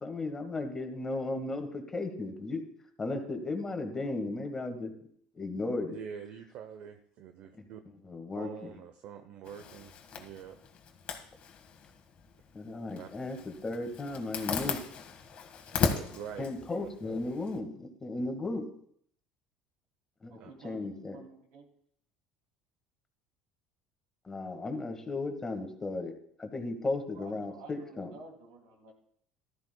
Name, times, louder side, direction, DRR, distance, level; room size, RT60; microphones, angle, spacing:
voice 1, 0.0-2.6 3.0-4.9 5.3-6.0 7.6-7.7 8.0-8.7 12.5-14.8 16.4-18.7 20.2-20.4 20.6-21.2 24.3-26.1 26.4-28.1, left 2 dB, 20° left, 5 dB, 1.7 m, -35 dB
voice 2, 5.9-7.8 8.4-10.6 13.0-13.1 15.7-16.5 16.8-16.9 18.1-18.3 20.4-20.5, right 8 dB, 60° right, 7 dB, 0.8 m, -45 dB
Zipper (clothing), 9.5-17.6, left 6 dB, 45° left, 1.6 m, -37 dB
voice 3, 20.3-21.7 27.1-28.9, right 3 dB, 85° right, 2 dB, 2.6 m, -51 dB
15.0 x 12.5 x 2.3 m, 0.66 s
supercardioid pair, 110°, 3 cm